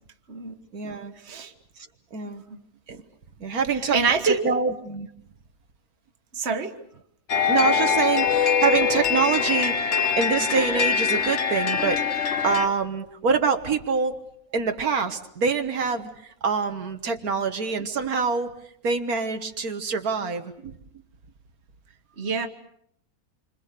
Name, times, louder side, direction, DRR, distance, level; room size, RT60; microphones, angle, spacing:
voice 1, 0.7-1.1 2.1-2.4 2.9-3.0 3.4-5.1 7.5-14.2 14.5-16.1 16.4-18.5 18.8-20.7, right 5 dB, 75° right, 6 dB, 1.9 m, -25 dB
voice 2, 3.9-4.6 6.3-6.7 22.2-22.5, right 5 dB, 45° right, 7 dB, 1.7 m, -25 dB
sound 1, 7.3-12.7, left 6 dB, 50° left, 1.6 m, -23 dB
28.0 x 25.5 x 6.7 m, 0.70 s
omnidirectional pair, 1.6 m